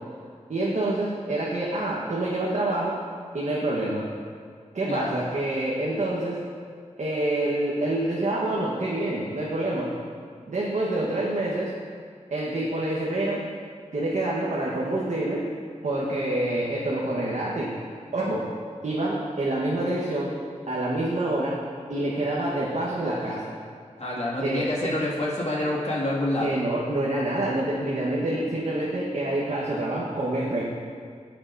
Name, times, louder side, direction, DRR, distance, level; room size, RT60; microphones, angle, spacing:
voice 1, 0.5-3.0 3.3-4.1 4.7-6.4 7.0-9.9 10.5-11.7 12.3-13.4 13.9-15.4 15.8-17.7 18.1-18.5 18.8-20.3 20.7-21.6 21.9-23.5 24.4-24.9 26.4-30.6, right 1 dB, 70° right, -6 dB, 1.4 m, -27 dB
voice 2, 4.8-5.2 24.0-26.6, left 1 dB, 55° left, -6 dB, 2.3 m, -27 dB
16.5 x 6.8 x 2.7 m, 2.1 s
wide cardioid pair, 85°, 13 cm